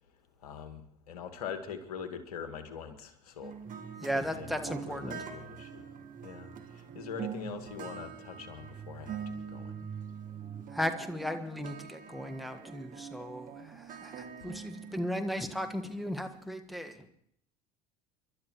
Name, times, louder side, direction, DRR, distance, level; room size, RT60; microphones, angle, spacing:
voice 1, 0.4-3.5 4.1-5.9 6.2-9.2 9.5-9.8 14.4-14.5, left 7 dB, 80° left, 8 dB, 1.7 m, -43 dB
sound 1, 3.4-16.4, right 7 dB, 45° right, 1.8 m, -45 dB
sound 2, 3.6-10.6, right 7 dB, 30° right, 3.1 m, -48 dB
voice 2, 4.0-5.2 10.7-17.1, equal, ahead, 7 dB, 1.5 m, -36 dB
29.5 x 12.0 x 3.1 m, 0.69 s
hypercardioid pair, 75°, 19 cm